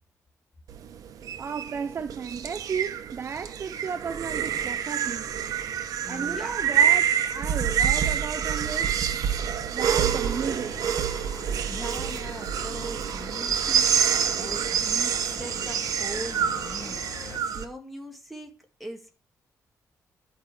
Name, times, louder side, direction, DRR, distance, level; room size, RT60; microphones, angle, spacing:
sound 1, 0.7-17.6, right 8 dB, 75° right, 1.0 m, -27 dB
voice 1, 1.4-5.3 6.1-9.0 9.7-10.8, right 6 dB, 40° right, 0.5 m, -34 dB
voice 2, 6.0-6.6 11.7-19.1, equal, ahead, 2.0 m, -41 dB
sound 2, 9.9-17.4, left 5 dB, 60° left, 1.5 m, -43 dB
11.5 x 5.4 x 6.2 m
wide cardioid pair, 160°, 6 cm